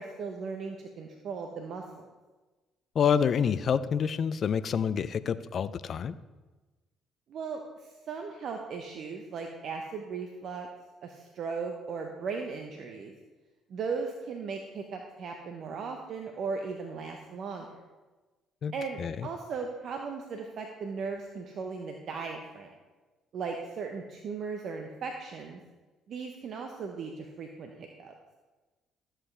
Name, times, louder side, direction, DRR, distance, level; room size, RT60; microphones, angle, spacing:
voice 1, 0.0-2.1 7.3-10.7 11.0-13.1 13.7-17.7 18.7-22.7 23.3-25.6 26.1-28.1, right 5 dB, 60° right, 3 dB, 0.9 m, -37 dB
voice 2, 2.9-6.1 18.6-18.7 19.0-19.3, left 7 dB, 55° left, 15 dB, 0.4 m, -27 dB
13.0 x 7.4 x 3.3 m, 1.2 s
hypercardioid pair, 55°, 0 cm